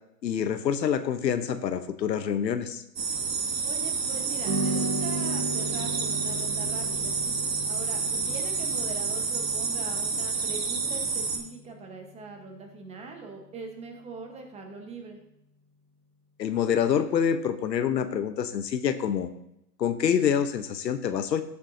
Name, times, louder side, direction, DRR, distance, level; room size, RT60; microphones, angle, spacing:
voice 1, 0.2-2.8 16.4-19.3 19.8-21.4, left 8 dB, 85° left, 10 dB, 1.0 m, -26 dB
sound 1, 3.0-11.4, right 5 dB, 90° right, 2.1 m, -29 dB
voice 2, 3.6-7.2 7.6-15.2, right 3 dB, 15° right, 3 dB, 1.1 m, -42 dB
sound 2, 4.4-13.0, right 1 dB, 40° right, 2.8 m, -37 dB
15.5 x 7.2 x 2.7 m, 0.80 s
hypercardioid pair, 135°, 49 cm